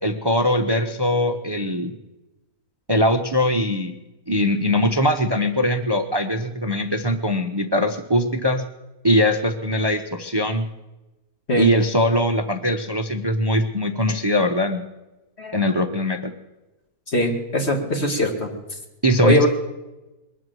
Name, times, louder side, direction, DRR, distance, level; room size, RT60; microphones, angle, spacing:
voice 1, 0.0-2.0 2.9-3.9 4.3-8.6 9.0-10.7 11.6-14.8 15.5-16.3 19.0-19.5, equal, 25° right, 7 dB, 0.5 m, -21 dB
voice 2, 17.1-18.5 19.2-19.5, left 1 dB, 45° left, 2 dB, 2.2 m, -21 dB
22.0 x 7.8 x 7.7 m, 1.0 s
omnidirectional pair, 1.6 m